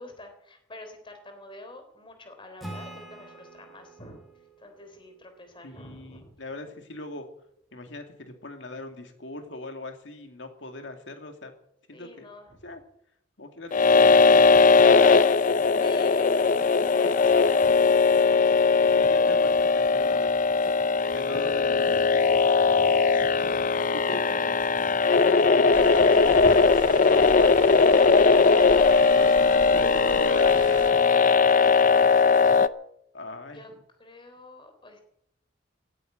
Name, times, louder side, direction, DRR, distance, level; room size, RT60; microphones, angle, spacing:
voice 1, 0.0-4.2 4.6-6.4 11.9-12.6 15.8-18.4 21.9-24.0 33.5-33.7 34.0-35.0, left 2 dB, 25° left, 6 dB, 3.6 m, -47 dB
Acoustic guitar / Strum, 2.6-6.1, right 1 dB, ahead, 4.7 m, -45 dB
voice 2, 5.6-7.3 7.7-11.5 11.9-12.3 12.6-12.8 13.4-15.1 18.9-20.5 21.1-22.3 24.1-24.2 25.1-25.8 26.2-28.6 29.1-31.3 33.1-33.8, left 2 dB, 70° left, 5 dB, 2.5 m, -40 dB
sound 1, 13.7-32.7, left 4 dB, 45° left, 0.6 m, -19 dB
sound 2, 25.7-30.9, right 2 dB, 25° right, 1.6 m, -39 dB
16.5 x 9.4 x 9.0 m, 0.75 s
head